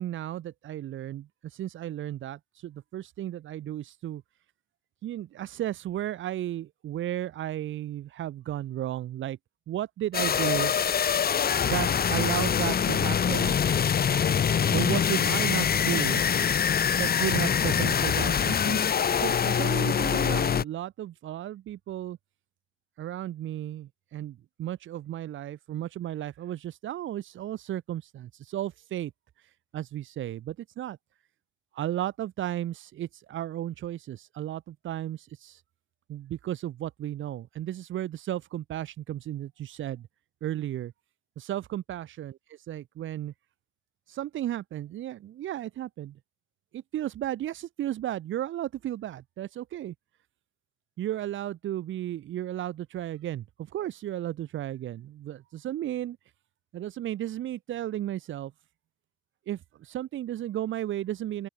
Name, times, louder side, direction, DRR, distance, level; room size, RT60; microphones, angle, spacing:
voice 1, 0.0-4.2 5.0-9.4 9.7-10.7 11.6-13.5 14.7-16.2 17.0-18.9 19.2-22.2 23.0-29.1 29.7-31.0 31.7-35.6 36.1-40.1 40.4-40.9 41.4-42.3 42.7-43.3 44.1-46.2 46.7-49.9 51.0-56.2 56.7-58.5 59.5-61.5, right 12 dB, 75° right, 4.6 m, -34 dB
sound 1, 10.1-20.6, left 8 dB, 50° left, 2.9 m, -24 dB
open air
cardioid pair, 90°, 20 cm